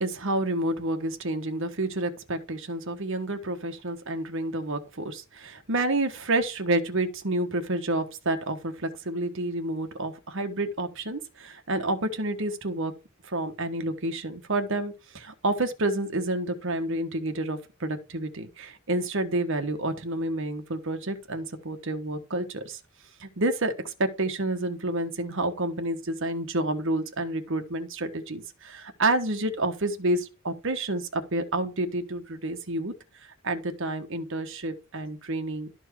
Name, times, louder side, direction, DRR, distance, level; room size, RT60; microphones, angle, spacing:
voice 1, 0.0-12.9 13.2-22.8 23.2-32.9 33.4-35.7, right 2 dB, 65° right, 1.3 m, -29 dB
12.5 x 4.6 x 4.6 m
head